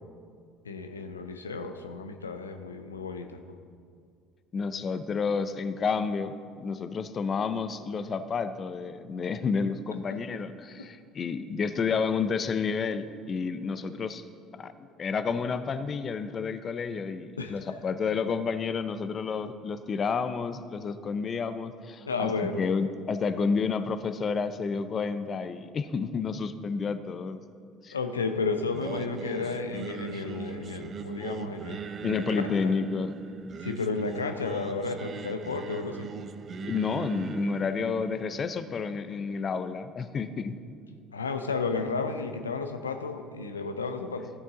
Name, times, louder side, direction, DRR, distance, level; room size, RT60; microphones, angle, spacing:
voice 1, 0.6-3.4 10.3-10.4 10.8-10.9 17.4-17.6 22.1-22.6 27.9-32.7 33.6-36.1 41.1-44.3, left 4 dB, 90° left, 7 dB, 0.4 m, -32 dB
voice 2, 4.5-14.2 14.6-22.3 22.6-27.4 27.8-28.0 32.0-33.1 36.6-40.5, left 5 dB, 40° left, 11 dB, 0.5 m, -30 dB
Singing, 28.7-39.8, right 6 dB, 40° right, 0.5 m, -40 dB
13.5 x 6.4 x 3.7 m, 2.2 s
hypercardioid pair, 60°, 0 cm